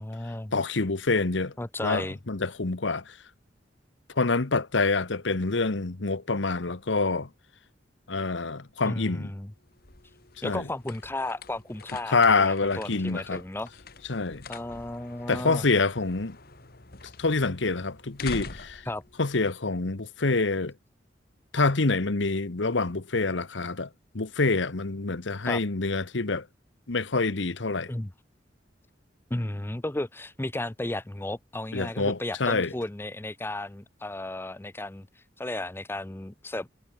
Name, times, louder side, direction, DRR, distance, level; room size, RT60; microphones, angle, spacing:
voice 1, 0.0-0.5 1.6-2.2 8.9-9.5 10.4-13.7 14.5-15.6 18.9-19.0 25.5-25.6 27.9-28.1 29.3-35.1 35.4-36.7, left 1 dB, 10° left, 0.7 m, -34 dB
voice 2, 0.5-1.5 1.8-3.2 4.2-7.3 8.1-9.3 10.4-10.7 12.1-13.4 14.1-14.4 15.3-16.4 17.2-18.8 19.2-20.7 21.5-23.9 24.1-26.5 26.9-27.9 31.7-32.7, left 3 dB, 90° left, 1.2 m, -26 dB
sound 1, 9.5-20.2, left 4 dB, 55° left, 2.3 m, -46 dB
head